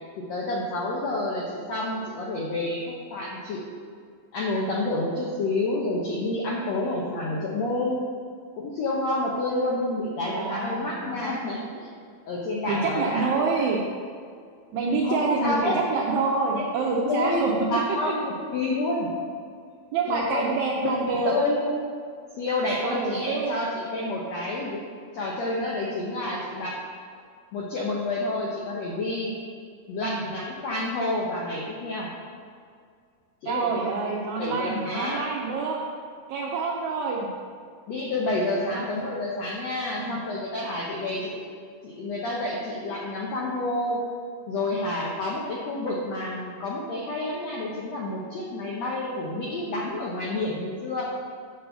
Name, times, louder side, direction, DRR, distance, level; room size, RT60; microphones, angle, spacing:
voice 1, 0.2-3.6 4.3-8.0 8.5-11.9 12.3-13.4 15.0-15.8 16.5-16.7 17.1-17.4 17.7-19.1 20.1-20.5 20.8-21.7 22.4-24.8 25.1-26.8 27.5-29.3 29.9-32.1 33.4-33.7 34.4-35.3 37.9-41.4 41.8-44.0 44.5-51.1, left 2 dB, 80° left, -4 dB, 1.5 m, -29 dB
voice 2, 10.2-11.2 12.7-13.8 14.7-17.5 19.9-21.3 22.8-23.5 30.0-30.2 33.5-35.8 36.3-37.3 38.6-38.9 40.0-40.2, right 4 dB, 85° right, -2 dB, 1.6 m, -27 dB
7.8 x 3.9 x 6.8 m, 2.2 s
omnidirectional pair, 4.1 m